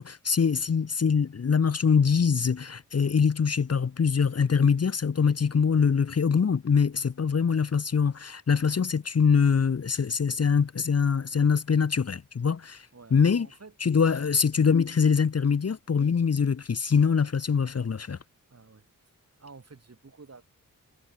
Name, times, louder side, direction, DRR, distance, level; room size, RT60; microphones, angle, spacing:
voice 1, 0.0-13.5 13.8-18.2, left 6 dB, 50° left, 1.0 m, -24 dB
voice 2, 12.9-13.7 18.5-19.1 19.4-20.4, right 4 dB, 50° right, 7.8 m, -50 dB
wide cardioid pair, 125°, 33 cm